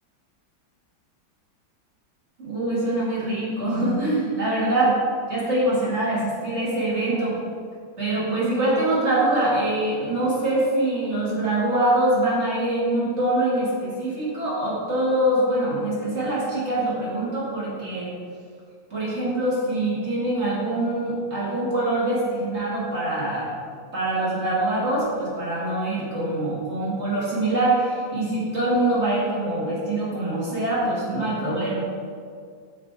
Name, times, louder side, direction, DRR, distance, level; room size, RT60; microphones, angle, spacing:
voice 1, 2.4-5.0 5.3-7.4 8.0-18.1 18.9-23.5 23.9-31.8, right 1 dB, 35° right, -7 dB, 2.3 m, -24 dB
8.5 x 6.1 x 3.6 m, 2.2 s
omnidirectional pair, 2.2 m